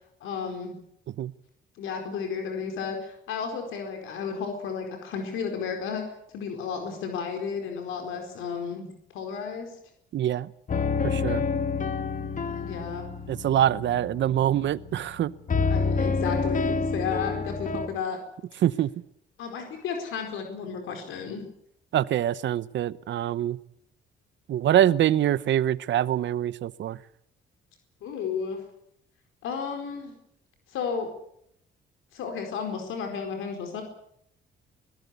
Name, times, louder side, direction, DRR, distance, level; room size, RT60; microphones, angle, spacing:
voice 1, 0.2-0.8 1.7-9.8 12.5-13.1 15.7-18.2 19.4-21.4 28.0-28.6 29.4-30.1 30.7-31.1 32.1-33.8, left 6 dB, 90° left, 4 dB, 4.6 m, -33 dB
voice 2, 10.1-10.5 11.0-11.4 13.3-15.3 18.6-18.9 21.9-23.6 24.5-27.0, right 11 dB, 70° right, 18 dB, 0.9 m, -24 dB
sound 1, 10.7-15.2 15.5-17.9, left 4 dB, 40° left, 1.8 m, -28 dB
22.5 x 17.5 x 8.3 m, 0.73 s
cardioid pair, 90°, 20 cm